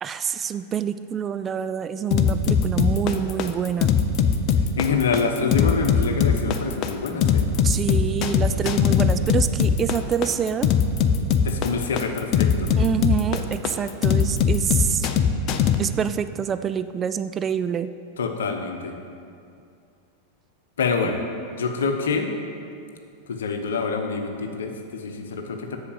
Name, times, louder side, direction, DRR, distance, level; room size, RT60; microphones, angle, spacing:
voice 1, 0.0-4.0 7.6-10.7 12.8-15.1 15.8-17.9 21.0-21.1, right 8 dB, 25° right, 12 dB, 0.3 m, -26 dB
sound 1, 2.1-15.8, left 7 dB, 40° left, 0.6 m, -20 dB
voice 2, 4.8-7.5 11.4-12.7 18.2-18.9 20.8-21.2 21.5-22.3 23.3-25.8, left 5 dB, 65° left, 5 dB, 1.0 m, -26 dB
8.4 x 6.5 x 7.2 m, 2.5 s
figure-of-eight pair, 90°, 0 cm